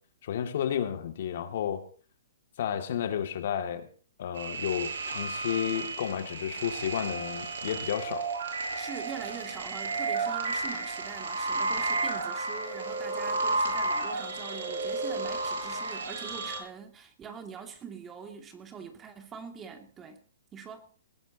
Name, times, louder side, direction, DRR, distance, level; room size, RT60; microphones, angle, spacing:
voice 1, 0.2-1.8 2.6-3.9 4.2-8.3, left 9 dB, 60° left, 2.4 m, -32 dB
sound 1, 4.4-16.6, right 3 dB, 80° right, 7.4 m, -32 dB
voice 2, 8.8-20.2 20.5-20.9, right 6 dB, 15° right, 2.5 m, -44 dB
20.5 x 18.0 x 3.0 m
hypercardioid pair, 150°, 0 cm